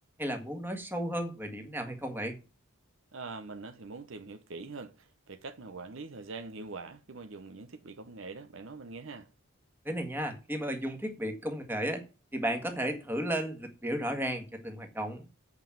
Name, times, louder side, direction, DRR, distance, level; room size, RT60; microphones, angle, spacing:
voice 1, 0.2-2.4 9.8-12.0 12.3-15.3, equal, 10° right, 1.7 m, -34 dB
voice 2, 3.1-9.3, right 3 dB, 60° right, 0.8 m, -43 dB
8.3 x 5.3 x 7.4 m
head